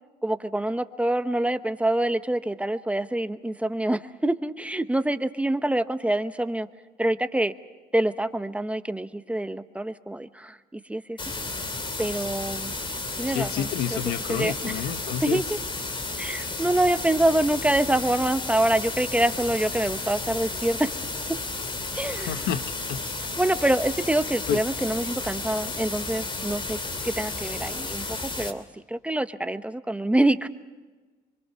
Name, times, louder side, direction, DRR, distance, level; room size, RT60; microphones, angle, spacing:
voice 1, 0.2-6.7 7.0-7.5 7.9-11.2 12.0-12.7 13.2-14.0 14.3-14.7 15.2-15.6 16.2-20.9 21.3-21.4 21.9-22.4 23.4-26.8 27.0-30.5, right 1 dB, 10° right, 10 dB, 0.9 m, -26 dB
sound 1, 11.2-28.5, left 3 dB, 30° left, 2.7 m, -33 dB
voice 2, 13.2-15.4 22.1-23.0 24.5-24.6, left 10 dB, 85° left, 12 dB, 1.1 m, -30 dB
27.0 x 25.0 x 5.6 m, 1.3 s
cardioid pair, 110°, 17 cm